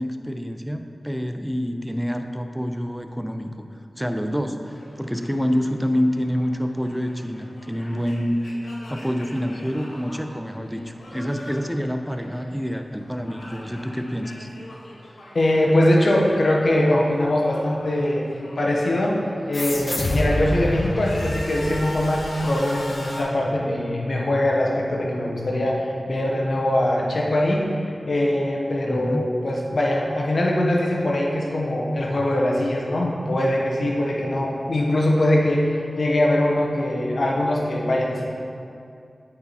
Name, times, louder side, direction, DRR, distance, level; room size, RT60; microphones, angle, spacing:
voice 1, 0.0-3.7 4.0-14.5 28.9-29.2, equal, ahead, 6 dB, 0.6 m, -27 dB
sound 1, 4.7-12.7 13.0-16.7 17.0-19.7 20.2-23.2, left 1 dB, 85° left, 1.4 m, -41 dB
voice 2, 15.3-18.2 18.5-19.2 19.5-27.7 28.1-38.3, left 1 dB, 65° left, -2 dB, 1.2 m, -22 dB
sound 2, 19.5-22.6, left 1 dB, 50° left, 0.9 m, -27 dB
8.9 x 4.7 x 4.3 m, 2.5 s
cardioid pair, 50°, 0 cm